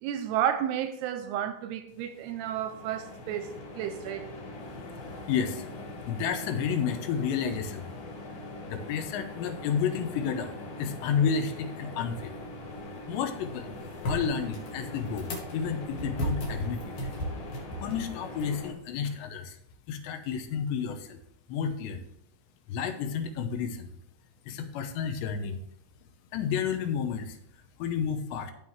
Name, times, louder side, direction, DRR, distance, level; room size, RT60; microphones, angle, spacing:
voice 1, 0.0-4.3, right 10 dB, 80° right, 2.5 m, -32 dB
sound 1, 2.0-18.7, left 2 dB, 35° left, 2.7 m, -42 dB
voice 2, 5.0-5.7 6.1-7.9 8.7-12.4 13.1-16.9 17.8-19.6 19.9-21.2 21.5-22.0 22.7-23.9 24.5-25.6 26.3-27.4 27.8-28.5, left 7 dB, 80° left, 3.1 m, -31 dB
sound 2, 12.1-19.1, equal, 60° left, 3.9 m, -38 dB
15.0 x 5.6 x 3.2 m
omnidirectional pair, 5.0 m